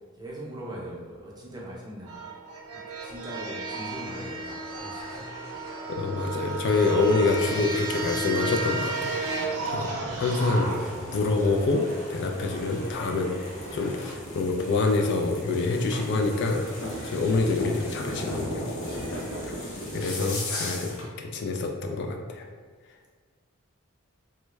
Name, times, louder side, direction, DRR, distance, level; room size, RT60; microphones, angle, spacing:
voice 1, 0.1-5.9 9.3-9.6 18.9-19.4, right 1 dB, 20° right, -4 dB, 0.6 m, -42 dB
sound 1, 2.1-20.4, right 2 dB, 90° right, 0.5 m, -35 dB
sound 2, 3.6-14.1, equal, 30° left, 0.8 m, -44 dB
voice 2, 5.9-9.9 10.2-11.8 12.1-13.3 13.7-16.7 17.0-18.7 19.1-19.2 19.4-19.5 19.9-22.5, left 3 dB, 55° left, 2 dB, 0.3 m, -26 dB
sound 3, 10.1-21.1, left 1 dB, 70° left, 0.7 m, -38 dB
3.4 x 2.1 x 3.1 m, 1.5 s
head